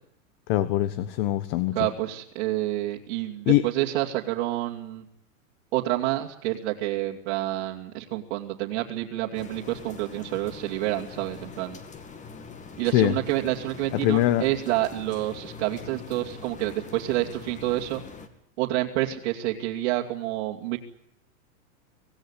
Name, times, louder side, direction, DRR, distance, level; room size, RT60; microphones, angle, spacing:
voice 1, 0.5-1.8 3.5-3.6 12.9-13.2 14.0-14.4, left 15 dB, 40° left, 15 dB, 1.2 m, -22 dB
voice 2, 1.7-5.0 5.7-11.8 12.8-18.0 18.6-20.8, right 15 dB, 50° right, -2 dB, 2.7 m, -28 dB
sound 1, 9.3-18.3, left 5 dB, 15° left, 2.2 m, -43 dB
25.5 x 17.0 x 10.0 m, 0.77 s
supercardioid pair, 145°, 43 cm